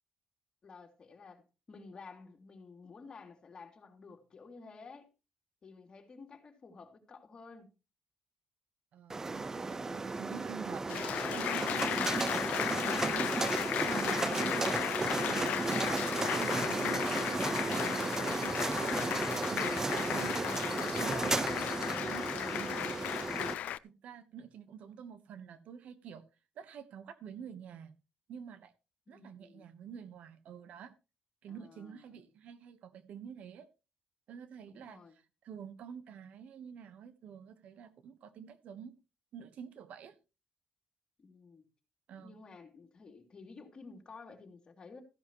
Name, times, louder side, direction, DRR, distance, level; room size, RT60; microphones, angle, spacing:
voice 1, 0.6-5.1 5.6-7.7 29.1-29.6 31.5-32.2 34.7-35.2 41.2-41.7 42.1-45.0, left 4 dB, 35° left, 3.0 m, -52 dB
voice 2, 8.9-13.6 13.9-14.9 15.3-20.4 20.8-23.0 23.3-23.5 23.8-26.2 26.6-27.9 28.3-28.7 29.1-30.9 31.4-33.7 34.3-35.0 35.4-38.9 39.3-40.1 42.1-42.4, right 7 dB, 75° right, 1.2 m, -48 dB
sound 1, 9.1-23.5, right 3 dB, 20° right, 0.5 m, -34 dB
Applause, 10.9-23.8, left 12 dB, 75° left, 0.5 m, -35 dB
15.0 x 11.0 x 3.1 m
cardioid pair, 120°, 2 cm